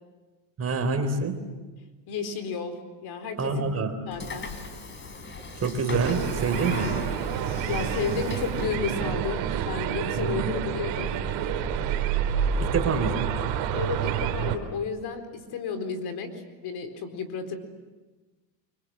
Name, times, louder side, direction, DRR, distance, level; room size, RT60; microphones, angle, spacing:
voice 1, 0.6-1.4 3.4-3.9 5.6-7.0 10.1-10.5 12.6-13.2, right 4 dB, 30° right, 8 dB, 3.6 m, -26 dB
voice 2, 2.1-3.6 4.1-4.5 7.7-11.2 12.7-12.8 13.7-17.6, left 5 dB, 50° left, 7 dB, 4.3 m, -32 dB
Train / Sliding door, 4.1-9.2, left 3 dB, 25° left, 3.7 m, -38 dB
sound 1, 5.9-14.6, right 8 dB, 60° right, 3.2 m, -28 dB
29.0 x 25.0 x 7.6 m, 1.2 s
supercardioid pair, 115°, 50 cm